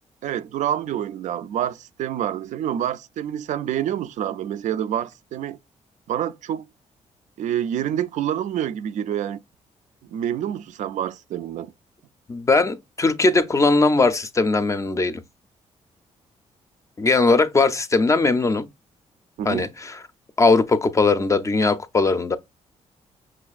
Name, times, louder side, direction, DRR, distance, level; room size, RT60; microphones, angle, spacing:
voice 1, 0.2-5.6 6.1-6.7 7.4-9.4 10.1-11.7 19.4-19.7, right 10 dB, 80° right, 0.4 m, -27 dB
voice 2, 12.3-15.2 17.0-18.7 19.5-20.0 20.4-22.4, left 3 dB, 25° left, 0.4 m, -19 dB
5.9 x 2.4 x 2.4 m
cardioid pair, 105°, 12 cm